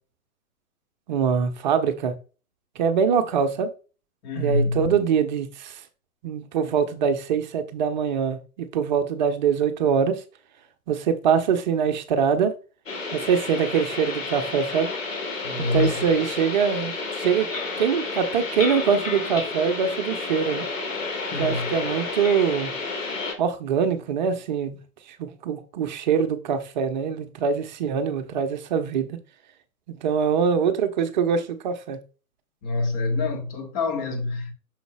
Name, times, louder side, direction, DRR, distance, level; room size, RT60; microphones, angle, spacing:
voice 1, 1.1-2.1 2.8-3.7 4.4-5.8 6.2-10.2 10.9-12.5 13.1-14.9 15.6-16.9 17.2-17.5 17.8-20.7 21.4-22.7 23.4-24.8 25.2-29.2 29.9-32.0, right 7 dB, 30° right, 0.8 m, -23 dB
voice 2, 4.2-4.9 15.4-16.0 21.2-21.7 32.6-34.5, left 3 dB, 25° left, 1.4 m, -26 dB
sound 1, 12.9-23.3, left 3 dB, 60° left, 2.6 m, -31 dB
8.0 x 6.5 x 2.2 m
figure-of-eight pair, 120°, 44 cm